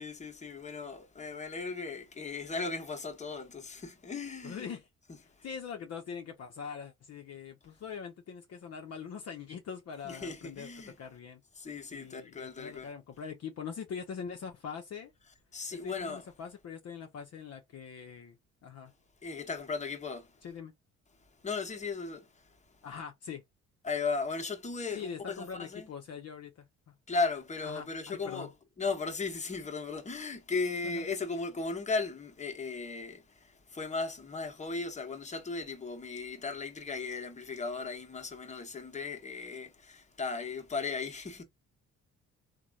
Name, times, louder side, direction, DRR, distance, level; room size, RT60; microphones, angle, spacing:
voice 1, 0.0-4.7 10.0-11.0 11.6-12.9 15.5-16.2 19.2-20.3 21.4-22.5 23.8-25.9 27.1-28.5 28.8-41.4, left 4 dB, 25° left, 1.0 m, -36 dB
voice 2, 4.4-4.9 5.4-10.7 11.0-11.4 11.9-15.1 15.7-18.4 18.6-18.9 20.4-20.7 22.8-23.4 24.9-26.9 27.6-28.5 30.8-31.1, left 6 dB, 55° left, 0.7 m, -43 dB
3.0 x 2.1 x 2.4 m
cardioid pair, 90°, 30 cm